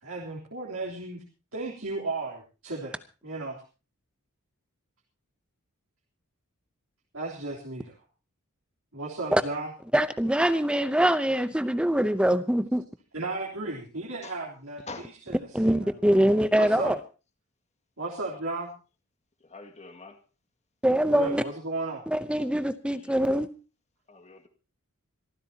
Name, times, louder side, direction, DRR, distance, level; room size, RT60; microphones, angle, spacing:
voice 1, 0.0-1.2 1.5-3.6 7.1-7.9 8.9-9.7 13.1-14.9 15.3-15.4 15.6-16.2 16.5-16.9 18.0-18.7 21.1-22.0, right 2 dB, 65° right, 3.4 m, -35 dB
voice 2, 9.9-12.8 15.5-17.0 20.8-21.4 22.1-23.5, right 1 dB, 5° right, 0.7 m, -23 dB
voice 3, 19.4-20.2 22.9-23.3 24.1-24.5, left 3 dB, 30° left, 2.1 m, -44 dB
26.0 x 14.5 x 2.9 m
head